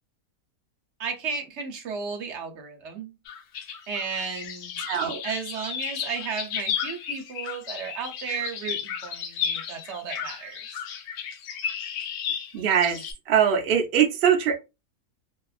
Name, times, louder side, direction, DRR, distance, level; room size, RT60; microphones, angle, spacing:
voice 1, 1.0-3.1 3.9-4.8 5.2-10.8, right 5 dB, 60° right, 0.8 m, -34 dB
sound 1, 3.3-13.1, left 8 dB, 75° left, 1.1 m, -33 dB
voice 2, 4.9-5.2 12.5-13.0 13.3-14.5, right 8 dB, 90° right, 0.5 m, -21 dB
2.7 x 2.4 x 2.3 m
omnidirectional pair, 1.7 m